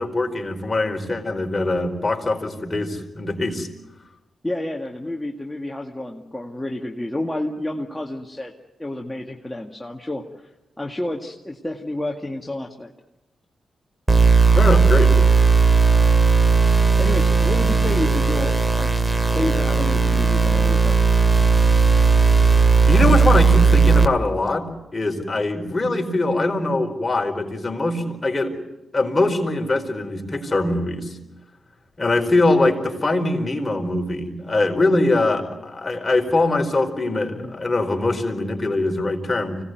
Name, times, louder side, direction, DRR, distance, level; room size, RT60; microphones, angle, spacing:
voice 1, 0.0-3.7 14.6-15.1 22.9-28.6 28.9-31.1 32.0-39.6, left 2 dB, 30° left, 2 dB, 4.7 m, -22 dB
voice 2, 4.4-8.5 8.8-10.5 10.8-12.9 17.0-18.9 19.3-21.0 37.3-37.6, left 1 dB, 15° left, 0 dB, 2.0 m, -29 dB
sound 1, 14.1-24.1, right 4 dB, 15° right, 2.2 m, -16 dB
25.0 x 18.0 x 9.4 m, 1.0 s
supercardioid pair, 50°, 0 cm